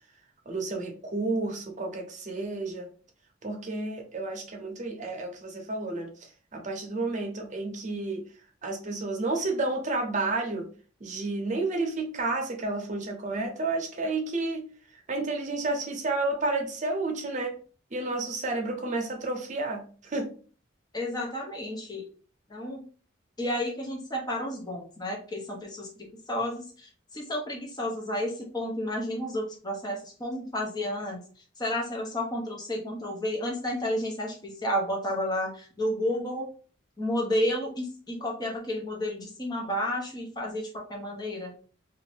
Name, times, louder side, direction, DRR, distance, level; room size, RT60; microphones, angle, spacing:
voice 1, 0.5-2.9 3.4-8.3 8.6-10.7 11.0-14.7 14.9-17.6 17.9-20.3, right 2 dB, 40° right, 2 dB, 0.7 m, -31 dB
voice 2, 20.9-22.1 22.5-22.8 23.4-31.2 31.6-36.5 37.0-41.5, left 1 dB, 20° left, -1 dB, 0.7 m, -31 dB
2.7 x 2.5 x 3.3 m, 0.40 s
head